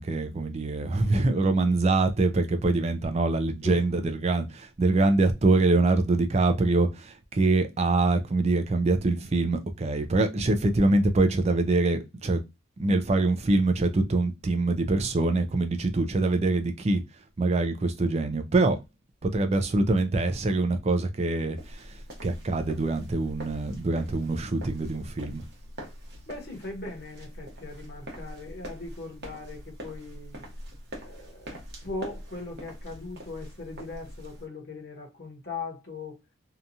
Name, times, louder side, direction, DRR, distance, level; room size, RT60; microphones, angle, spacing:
voice 1, 0.0-12.4 12.8-17.0 17.4-18.8 19.2-25.4, right 2 dB, 30° right, 0.3 m, -24 dB
sound 1, 21.6-34.5, equal, 50° right, 0.9 m, -43 dB
voice 2, 26.3-30.4 30.9-36.2, left 3 dB, 50° left, 0.9 m, -39 dB
2.8 x 2.3 x 2.6 m
head